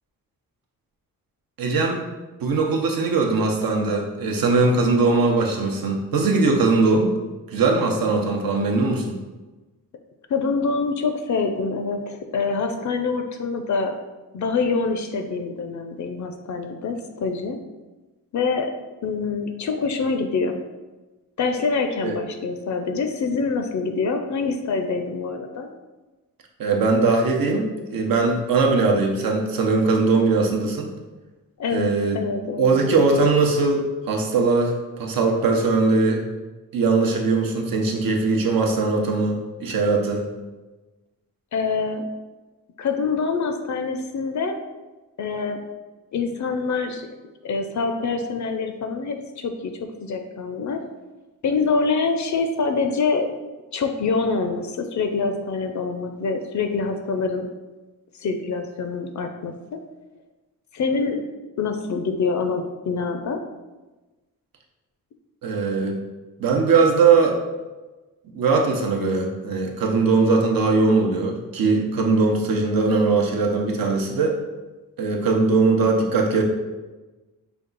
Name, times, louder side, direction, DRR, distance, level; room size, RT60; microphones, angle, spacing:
voice 1, 1.6-2.0 2.4-7.1 7.5-9.2 22.0-22.2 26.6-30.9 31.7-32.2 32.6-36.2 36.7-40.3 65.4-66.0 66.4-67.4 68.3-74.4 75.0-76.4, right 3 dB, 75° right, 1 dB, 0.8 m, -20 dB
voice 2, 10.3-14.0 14.3-17.6 18.3-18.7 19.0-20.6 21.4-25.7 31.6-32.9 41.5-42.1 42.8-44.6 45.2-45.6 46.1-47.1 47.4-50.8 51.4-53.3 53.7-57.5 58.2-59.8 60.7-61.2 61.6-63.4, left 4 dB, 55° left, 6 dB, 0.5 m, -25 dB
5.2 x 2.3 x 3.9 m, 1.2 s
wide cardioid pair, 130°, 34 cm